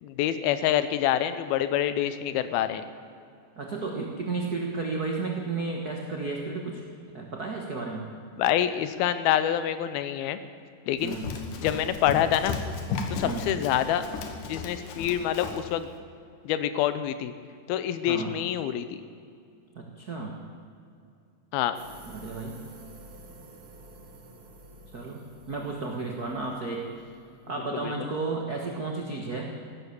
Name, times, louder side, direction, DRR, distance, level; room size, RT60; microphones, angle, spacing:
voice 1, 0.0-2.9 8.4-10.4 10.9-11.2 11.6-12.6 13.1-14.0 14.5-15.9 16.4-17.3 17.7-19.0 21.5-21.8 27.7-27.9, left 11 dB, 85° left, 12 dB, 2.7 m, -26 dB
voice 2, 3.6-6.8 7.1-8.1 11.0-11.3 13.2-13.5 18.0-18.3 19.7-20.4 22.1-22.6 24.9-26.9 27.5-29.5, right 3 dB, 85° right, 0 dB, 0.8 m, -33 dB
Run, 11.0-15.7, left 5 dB, 65° left, 2.7 m, -35 dB
sound 1, 21.7-27.9, right 1 dB, 65° right, 3.6 m, -50 dB
15.5 x 12.5 x 7.1 m, 2.4 s
omnidirectional pair, 4.2 m